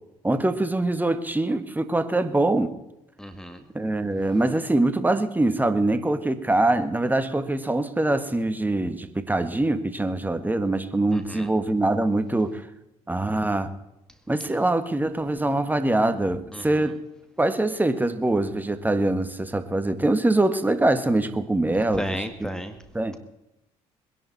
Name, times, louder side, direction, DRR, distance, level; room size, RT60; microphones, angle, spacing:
voice 1, 0.2-2.8 3.7-12.6 13.1-13.7 14.3-17.0 17.4-22.5 22.9-23.1, right 2 dB, 10° right, 10 dB, 1.6 m, -23 dB
voice 2, 3.2-3.6 11.1-11.5 16.5-16.6 22.0-22.8, equal, 5° left, 8 dB, 2.0 m, -33 dB
22.0 x 11.0 x 4.1 m, 0.88 s
supercardioid pair, 65°, 14 cm